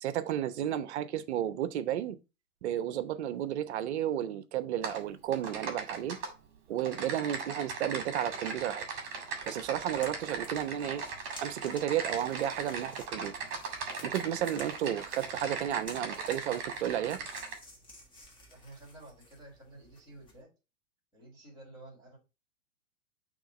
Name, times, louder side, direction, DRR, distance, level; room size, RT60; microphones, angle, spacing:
voice 1, 0.0-2.2 2.6-6.2 6.7-8.9 9.5-11.0 11.4-13.3 14.0-17.2, right 11 dB, 50° right, 0.8 m, -32 dB
Typing, 4.8-5.0 5.3-6.3 6.8-17.5, right 5 dB, 25° right, 2.1 m, -39 dB
sound 1, 9.4-20.4, left 1 dB, 10° left, 1.5 m, -53 dB
voice 2, 18.5-20.5 21.1-22.2, right 2 dB, 10° right, 3.9 m, -52 dB
6.3 x 3.1 x 5.2 m
figure-of-eight pair, 115°, 44 cm